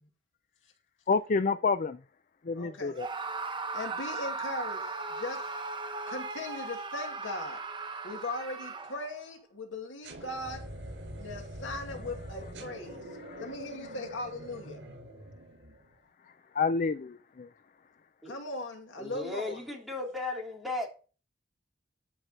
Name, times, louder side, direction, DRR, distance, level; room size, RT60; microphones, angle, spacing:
voice 1, 1.1-2.0 2.5-3.1 13.3-13.5 16.6-17.5, left 4 dB, 45° left, 0.5 m, -28 dB
voice 2, 2.6-3.0 3.7-4.8 5.2-5.4 6.1-7.6 8.0-10.7 11.2-13.0 13.4-14.8 18.3-19.6, left 2 dB, 85° left, 2.3 m, -39 dB
Screaming, 3.0-9.2, right 3 dB, 25° right, 1.0 m, -37 dB
sound 1, 10.0-16.0, right 1 dB, 75° right, 5.0 m, -44 dB
voice 3, 19.0-20.9, left 2 dB, ahead, 3.4 m, -35 dB
13.0 x 5.9 x 4.2 m
head